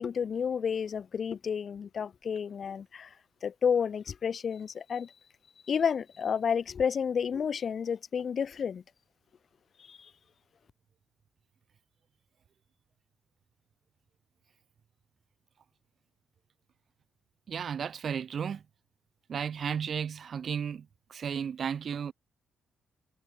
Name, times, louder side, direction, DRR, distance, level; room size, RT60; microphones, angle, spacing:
voice 1, 0.0-3.1 3.4-5.1 5.7-8.8 9.8-10.1, left 7 dB, 50° left, 1.3 m, -31 dB
voice 2, 17.5-18.6 19.3-22.1, right 7 dB, 50° right, 0.5 m, -34 dB
cardioid pair, 90°, 0 cm